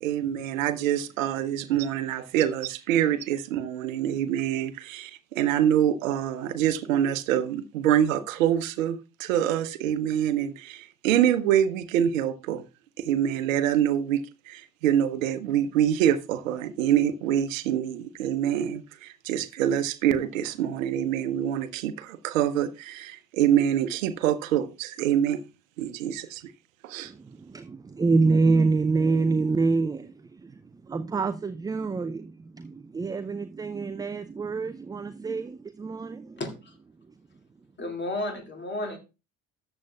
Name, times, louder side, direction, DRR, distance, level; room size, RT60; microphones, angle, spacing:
voice 1, 0.0-12.6 13.0-25.4 25.8-26.4 26.8-27.1, right 10 dB, 70° right, 0.9 m, -25 dB
voice 2, 27.0-36.4 37.0-37.1, right 3 dB, 10° right, 0.4 m, -26 dB
voice 3, 36.4-36.8 37.8-39.0, left 2 dB, 25° left, 2.3 m, -32 dB
13.5 x 8.6 x 2.3 m
figure-of-eight pair, 60°, 41 cm